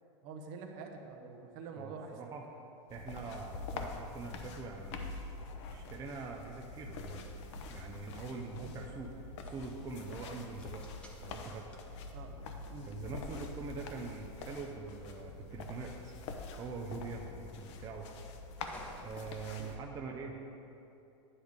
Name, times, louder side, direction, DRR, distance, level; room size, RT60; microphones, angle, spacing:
voice 1, 0.2-2.3 8.6-8.8 12.1-12.3 12.7-12.9 19.6-19.7, right 4 dB, 50° right, 4 dB, 0.9 m, -47 dB
sound 1, 1.0-20.2, equal, 5° left, 0.9 m, -61 dB
voice 2, 1.8-2.4 2.9-5.1 5.7-7.3 7.7-9.1 9.5-10.9 11.2-11.8 12.9-16.1 16.6-18.1 19.0-20.4, right 4 dB, 20° right, 0 dB, 0.5 m, -44 dB
sound 2, 2.9-19.8, left 3 dB, 65° left, 0.8 m, -45 dB
9.9 x 3.5 x 6.4 m, 2.8 s
supercardioid pair, 140°, 16 cm